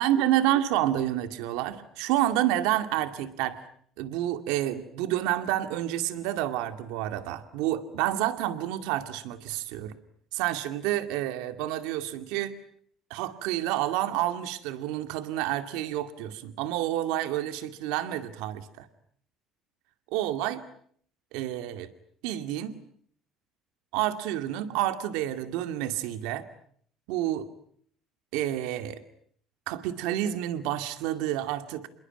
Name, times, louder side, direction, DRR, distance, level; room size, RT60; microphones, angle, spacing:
voice 1, 0.0-3.6 4.0-10.0 10.3-12.5 13.1-18.9 20.1-20.6 21.3-21.9 22.2-22.8 23.9-26.5 27.1-27.5 28.3-29.0 29.7-31.9, right 13 dB, 90° right, 10 dB, 2.2 m, -29 dB
28.0 x 22.0 x 9.0 m, 0.63 s
cardioid pair, 135°, 0 cm